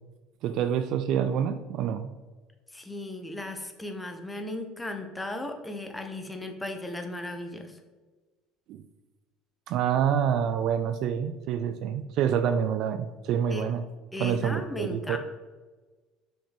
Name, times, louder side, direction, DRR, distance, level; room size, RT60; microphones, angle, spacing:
voice 1, 0.4-2.1 8.7-8.8 9.7-13.8 14.2-15.2, right 8 dB, 65° right, 10 dB, 0.3 m, -27 dB
voice 2, 2.7-7.8 13.5-13.6 14.1-15.2, left 1 dB, 10° left, 5 dB, 0.8 m, -36 dB
5.7 x 5.3 x 3.3 m, 1.3 s
supercardioid pair, 90°, 0 cm